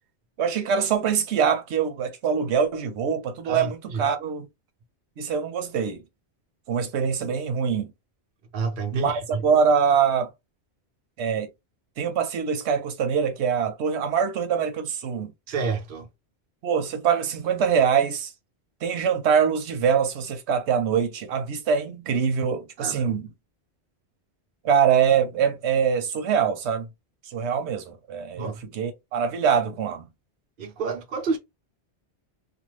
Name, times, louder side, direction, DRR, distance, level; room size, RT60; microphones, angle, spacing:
voice 1, 0.4-4.5 5.2-6.0 6.7-7.9 8.9-10.3 11.2-11.5 12.0-15.3 16.6-18.3 18.8-23.3 24.6-26.9 27.3-30.1, right 7 dB, 90° right, 0.9 m, -24 dB
voice 2, 3.4-4.1 8.5-9.5 15.5-16.1 22.8-23.2 28.3-28.6 30.6-31.4, right 4 dB, 55° right, 0.8 m, -29 dB
2.5 x 2.3 x 3.0 m
omnidirectional pair, 1.1 m